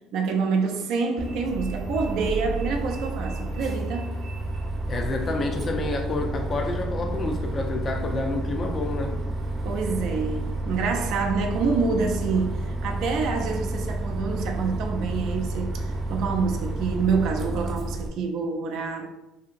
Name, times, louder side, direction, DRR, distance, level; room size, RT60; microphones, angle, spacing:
voice 1, 0.0-4.1 9.6-19.1, right 4 dB, 70° right, 0.4 m, -27 dB
Bus, 1.2-18.1, right 2 dB, 40° right, 0.7 m, -30 dB
voice 2, 4.9-9.1, left 2 dB, 35° left, 0.4 m, -29 dB
2.8 x 2.7 x 2.4 m
cardioid pair, 110°, 0 cm